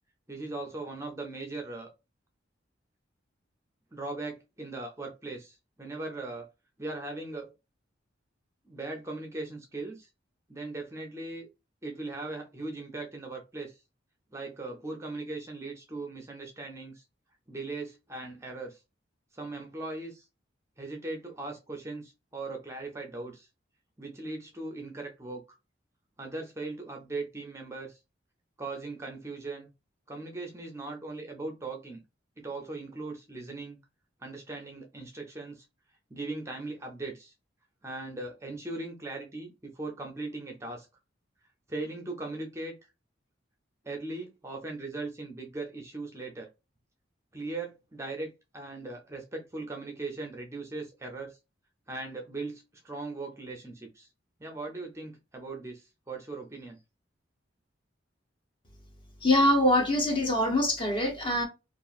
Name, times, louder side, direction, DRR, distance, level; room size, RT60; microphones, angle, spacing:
voice 1, 0.3-1.9 3.9-6.5 6.8-7.5 8.7-10.1 10.5-11.5 11.8-13.8 14.3-17.0 17.5-18.8 19.3-20.3 20.8-23.5 24.0-25.4 26.2-28.0 28.6-29.7 30.1-32.0 32.4-33.8 34.2-35.7 36.1-37.3 37.8-40.9 41.7-42.8 43.8-46.5 47.3-51.4 51.9-54.1 54.4-56.8, right 2 dB, 15° right, 0.5 m, -39 dB
voice 2, 59.2-61.4, left 1 dB, 25° left, 0.7 m, -24 dB
2.8 x 2.4 x 2.3 m
head